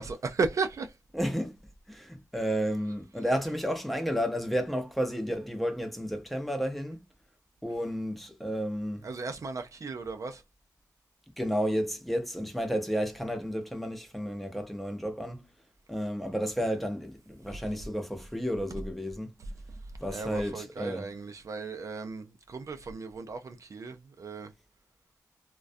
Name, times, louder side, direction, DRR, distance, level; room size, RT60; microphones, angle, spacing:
voice 1, 0.0-1.0 9.0-10.4 19.7-19.8 20.1-24.5, right 4 dB, 55° right, 0.3 m, -35 dB
voice 2, 1.1-1.6 1.9-7.0 7.6-9.0 11.4-15.5 15.9-19.3 20.0-21.1, equal, ahead, 0.6 m, -32 dB
2.3 x 2.2 x 2.5 m
wide cardioid pair, 105°, 7 cm